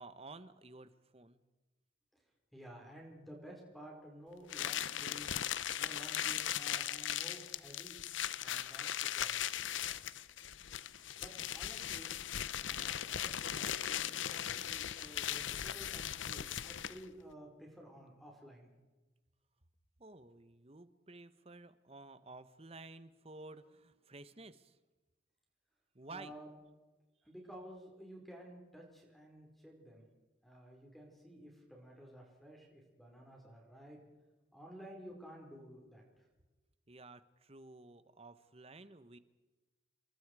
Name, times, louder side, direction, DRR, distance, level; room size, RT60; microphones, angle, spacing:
voice 1, 0.0-1.4 20.0-24.8 25.9-26.3 36.9-39.2, right 3 dB, 30° right, 13 dB, 1.1 m, -53 dB
voice 2, 2.5-5.4 5.8-8.0 8.4-9.4 11.2-12.1 12.7-18.7 26.1-26.6 27.2-30.1 30.4-34.0 34.5-36.3, equal, ahead, 0 dB, 5.0 m, -53 dB
sound 1, 4.5-17.1, left 10 dB, 80° left, 0.8 m, -38 dB
29.5 x 23.0 x 4.9 m, 1.2 s
head